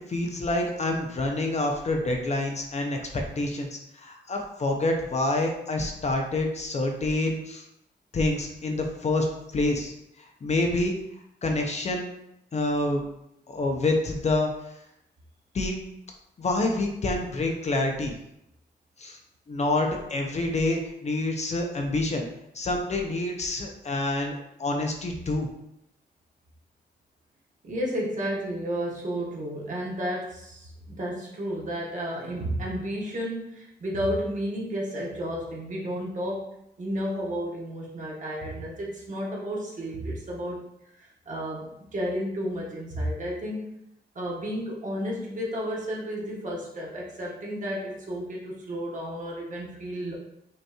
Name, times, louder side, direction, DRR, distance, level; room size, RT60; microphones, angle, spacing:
voice 1, 0.1-7.6 8.1-9.3 9.5-11.0 11.4-12.1 12.5-13.0 13.5-14.5 15.5-15.8 16.4-18.1 19.0-19.2 19.5-22.3 22.5-24.3 24.6-25.5, left 2 dB, 40° left, 2 dB, 0.5 m, -27 dB
voice 2, 27.6-36.5 36.8-40.6 41.0-43.6 44.1-50.1, equal, 45° right, -4 dB, 1.1 m, -32 dB
5.2 x 2.9 x 2.3 m, 0.81 s
wide cardioid pair, 120°, 18 cm